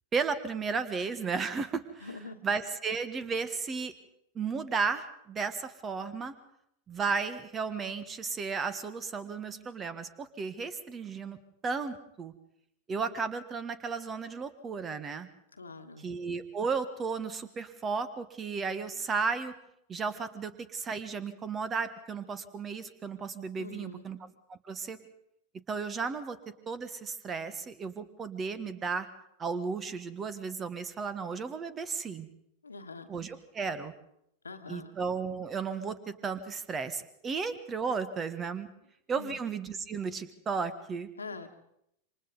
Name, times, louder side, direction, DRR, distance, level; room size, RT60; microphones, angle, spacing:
voice 1, 0.1-2.1 2.4-3.9 4.3-6.3 6.9-11.4 11.6-12.3 12.9-15.3 16.0-19.5 19.9-24.2 24.5-25.0 25.7-26.4 26.7-29.1 29.4-32.3 33.1-33.9 34.7-38.7 39.1-41.1, right 5 dB, 20° right, 13 dB, 1.3 m, -34 dB
voice 2, 2.0-2.4 15.5-16.1 23.6-24.0 32.6-33.1 34.4-34.9 39.2-39.4 41.2-41.5, left 3 dB, 75° left, 7 dB, 1.5 m, -44 dB
27.5 x 25.0 x 4.0 m, 0.78 s
figure-of-eight pair, 90°, 0 cm